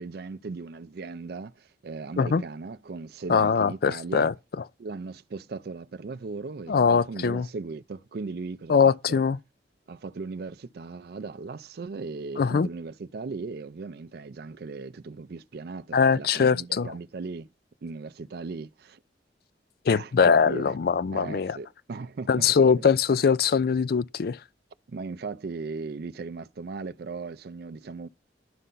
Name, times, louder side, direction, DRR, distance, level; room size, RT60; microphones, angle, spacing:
voice 1, 0.0-4.3 4.8-9.2 9.9-17.5 17.8-19.0 19.9-20.7 21.1-22.9 24.9-28.1, right 4 dB, 60° right, 0.4 m, -38 dB
voice 2, 3.3-4.3 6.7-7.5 8.7-9.4 12.4-12.7 15.9-16.9 19.9-21.6 22.3-24.4, left 6 dB, 55° left, 0.4 m, -22 dB
11.0 x 5.5 x 3.9 m
head